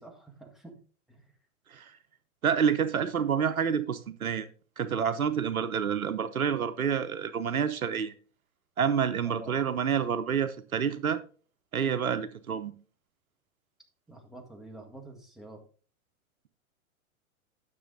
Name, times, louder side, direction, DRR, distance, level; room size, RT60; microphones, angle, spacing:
voice 1, 0.0-0.8 1.1-1.2 9.2-9.5 14.1-15.6, right 1 dB, ahead, 1.6 m, -47 dB
voice 2, 2.4-4.5 4.8-8.1 8.8-11.2 11.7-12.7, right 7 dB, 80° right, 0.8 m, -28 dB
10.0 x 6.3 x 3.8 m
figure-of-eight pair, 95°, 42 cm